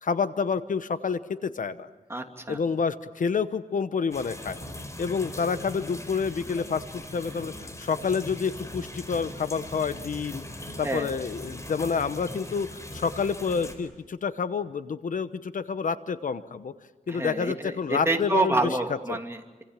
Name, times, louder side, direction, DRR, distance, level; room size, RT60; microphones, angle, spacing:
voice 1, 0.0-1.9 2.5-4.6 5.0-10.4 10.8-16.7 17.1-18.8 19.1-19.2, left 5 dB, 70° left, 12 dB, 1.0 m, -28 dB
voice 2, 2.1-2.6 10.8-11.1 17.1-17.7 18.1-19.6, right 2 dB, 20° right, 3 dB, 2.9 m, -28 dB
sound 1, 4.1-13.7, left 1 dB, 20° left, 4.5 m, -40 dB
28.0 x 26.0 x 7.5 m, 1.2 s
wide cardioid pair, 110°, 14 cm